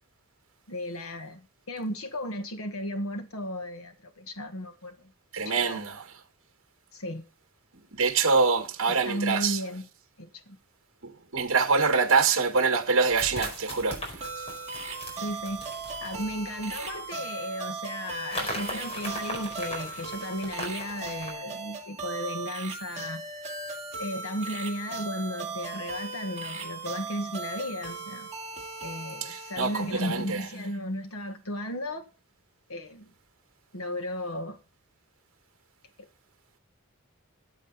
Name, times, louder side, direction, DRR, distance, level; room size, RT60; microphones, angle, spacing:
voice 1, 0.7-1.4 1.7-5.1 5.4-5.8 6.9-7.2 8.9-9.9 10.2-10.6 15.1-15.6 16.0-23.5 24.0-28.3 28.8-32.0 32.7-33.1 33.7-34.6, left 1 dB, 75° left, 1.5 m, -35 dB
voice 2, 5.3-6.0 7.9-9.6 11.3-14.0 29.2-30.4, right 4 dB, 65° right, 1.6 m, -25 dB
sound 1, 11.8-11.9 13.1-17.0 18.3-21.3, equal, 30° left, 4.5 m, -39 dB
sound 2, 14.2-30.4, right 4 dB, 30° right, 2.3 m, -38 dB
14.0 x 8.3 x 4.1 m
head